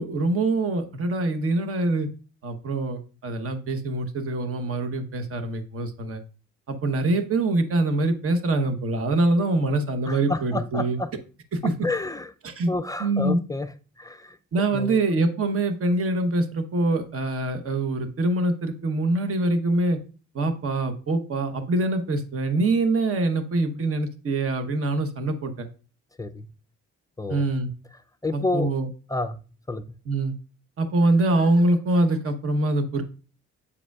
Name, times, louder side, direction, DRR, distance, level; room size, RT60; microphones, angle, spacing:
voice 1, 0.0-2.1 2.4-6.2 6.7-11.0 11.5-11.7 12.4-12.7 13.0-13.4 14.5-20.0 20.3-25.7 27.3-27.7 28.3-28.9 30.1-30.3 30.8-33.0, right 2 dB, 50° right, 8 dB, 1.0 m, -24 dB
voice 2, 10.1-11.1 11.8-12.3 12.7-13.7 14.0-14.4 14.7-15.0 26.2-26.5 27.2-27.4 28.2-28.7 29.1-29.9, left 2 dB, 10° left, 10 dB, 0.4 m, -29 dB
8.3 x 4.9 x 2.3 m, 0.37 s
cardioid pair, 90°, 30 cm